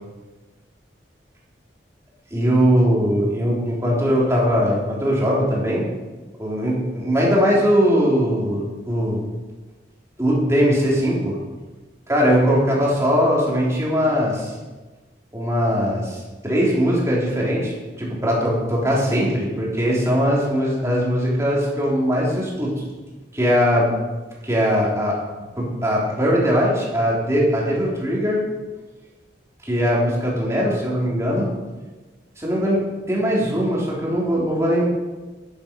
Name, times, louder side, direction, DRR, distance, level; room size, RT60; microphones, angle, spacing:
voice 1, 2.3-5.8 6.4-9.2 10.2-11.4 12.1-14.5 15.3-22.8 23.3-23.9 24.4-25.2 25.6-28.4 29.6-31.5 32.4-34.8, equal, 15° right, -5 dB, 3.5 m, -20 dB
11.0 x 10.5 x 5.3 m, 1.2 s
head